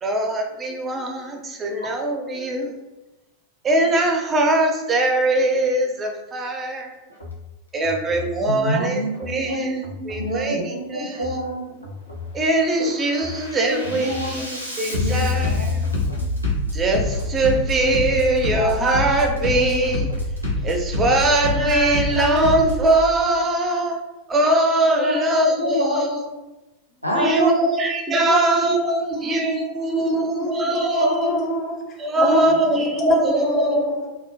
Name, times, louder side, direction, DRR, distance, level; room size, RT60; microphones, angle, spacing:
voice 1, 0.0-2.7 3.6-7.0 7.7-11.2 12.3-15.8 16.7-20.1 20.6-24.0 24.3-26.1 27.1-31.3 32.0-33.8, right 2 dB, 20° right, 0.4 m, -21 dB
Bass drum, 7.1-7.4 7.8-8.3 9.1-9.4 9.8-10.3 11.1-11.4 11.8-12.3 12.7-22.9, left 2 dB, 90° left, 0.5 m, -26 dB
voice 2, 8.5-11.8 12.8-12.9 13.2-14.6 14.9-16.3 25.0-26.4 27.0-27.6 28.1-28.4 29.3-29.5 29.9-30.0 31.0-31.3, equal, 90° right, 0.5 m, -27 dB
voice 3, 29.1-34.1, equal, 30° left, 0.5 m, -26 dB
2.3 x 2.1 x 2.5 m
figure-of-eight pair, 90°, 0 cm